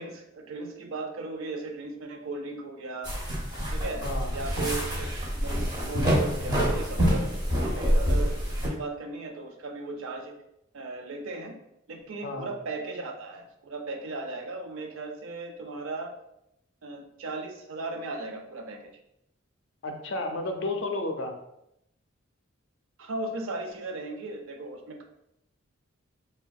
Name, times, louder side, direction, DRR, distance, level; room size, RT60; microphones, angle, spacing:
voice 1, 0.0-3.1 3.7-4.0 4.3-5.1 5.3-10.3 10.7-11.5 11.9-16.1 16.8-18.8 23.0-25.0, right 3 dB, 85° right, 4 dB, 0.5 m, -37 dB
sound 1, 3.0-8.7, equal, 20° right, 0.6 m, -26 dB
voice 2, 19.8-21.3, left 2 dB, 60° left, 4 dB, 0.4 m, -32 dB
3.4 x 2.2 x 2.2 m, 0.81 s
head